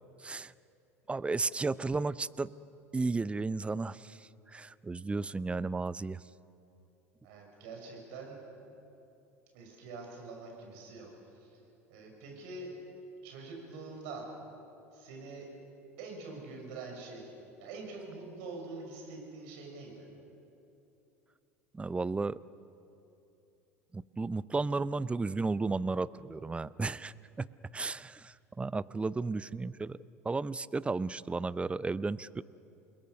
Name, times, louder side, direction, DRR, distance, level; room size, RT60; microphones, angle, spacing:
voice 1, 0.2-0.5 1.1-2.5 2.9-4.2 4.5-6.2 21.7-22.4 23.9-27.5 27.7-30.0 30.2-32.4, right 3 dB, 15° right, 19 dB, 0.6 m, -33 dB
voice 2, 7.2-8.4 9.5-11.1 11.4-11.6 11.9-12.7 13.2-14.3 14.9-15.5 16.0-17.3 17.6-20.1, right 3 dB, 65° right, 1 dB, 6.5 m, -45 dB
28.5 x 21.5 x 6.7 m, 2.8 s
hypercardioid pair, 75°, 8 cm